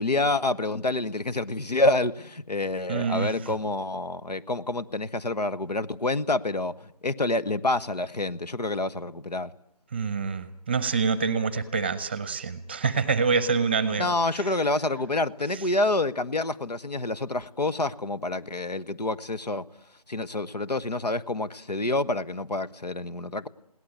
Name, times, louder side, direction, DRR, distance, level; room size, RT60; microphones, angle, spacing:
voice 1, 0.0-9.5 14.0-19.6 20.1-23.5, left 2 dB, 85° left, 1.3 m, -27 dB
voice 2, 2.9-3.3 9.9-14.4, right 5 dB, 15° right, 0.8 m, -26 dB
21.0 x 17.5 x 9.3 m
figure-of-eight pair, 165°, 20 cm